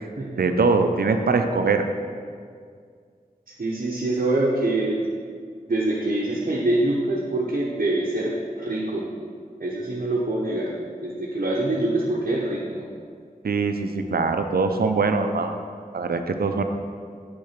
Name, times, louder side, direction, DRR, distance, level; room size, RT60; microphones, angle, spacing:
voice 1, 0.4-1.8 13.4-15.6 15.9-16.6, right 4 dB, 85° right, 6 dB, 0.5 m, -22 dB
voice 2, 3.6-5.0 5.7-9.1 9.6-10.7 11.0-12.8, right 2 dB, 60° right, -4 dB, 0.8 m, -24 dB
6.6 x 3.8 x 5.7 m, 2.1 s
wide cardioid pair, 60°, 15 cm